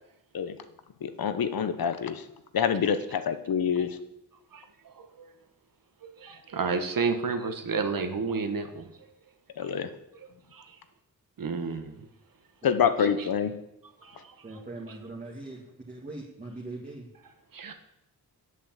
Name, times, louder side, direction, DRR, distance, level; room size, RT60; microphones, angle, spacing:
voice 1, 1.0-2.2 2.5-4.0 9.6-9.9 12.6-13.5, left 7 dB, 75° left, 11 dB, 1.0 m, -26 dB
voice 2, 6.0-8.9 10.5-10.6 11.4-11.9 17.5-17.7, right 4 dB, 65° right, 7 dB, 1.5 m, -30 dB
voice 3, 14.4-17.1, right 2 dB, 25° right, -3 dB, 1.8 m, -41 dB
9.7 x 8.3 x 7.5 m, 0.83 s
wide cardioid pair, 135°, 36 cm